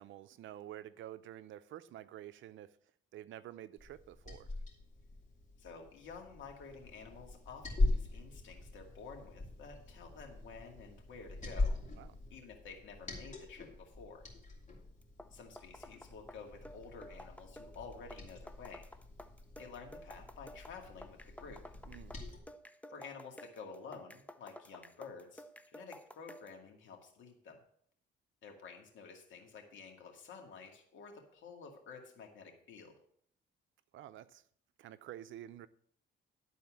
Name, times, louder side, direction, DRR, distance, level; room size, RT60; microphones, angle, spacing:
voice 1, 0.0-2.8 3.1-4.5 12.0-12.1 21.8-22.1 33.9-34.4 34.8-35.7, right 12 dB, 75° right, 0.6 m, -49 dB
Liquid, 3.8-22.4, left 2 dB, 35° left, 2.8 m, -41 dB
voice 2, 5.6-11.8 12.3-14.3 15.3-18.9 19.6-21.6 22.9-27.6 28.4-32.9, left 5 dB, 75° left, 2.1 m, -51 dB
sound 1, 15.0-26.6, equal, 5° left, 0.6 m, -53 dB
11.5 x 4.2 x 7.3 m
cardioid pair, 90°, 20 cm